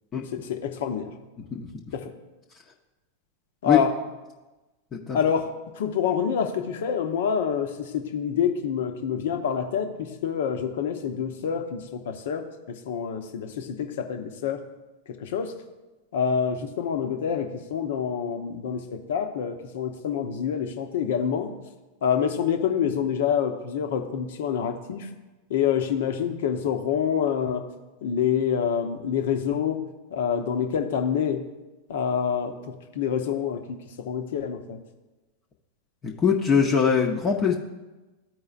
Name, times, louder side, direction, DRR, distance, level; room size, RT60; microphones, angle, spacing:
voice 1, 0.3-1.2 1.9-2.1 3.6-3.9 5.1-5.5 5.8-14.6 15.1-15.5 16.1-21.5 22.0-25.1 25.5-27.7 28.0-29.8 30.1-31.5 31.9-34.8, left 7 dB, 55° left, 5 dB, 0.8 m, -27 dB
voice 2, 36.0-37.6, left 6 dB, 25° left, 0 dB, 0.8 m, -22 dB
14.0 x 4.7 x 2.5 m, 1.1 s
figure-of-eight pair, 90°, 0 cm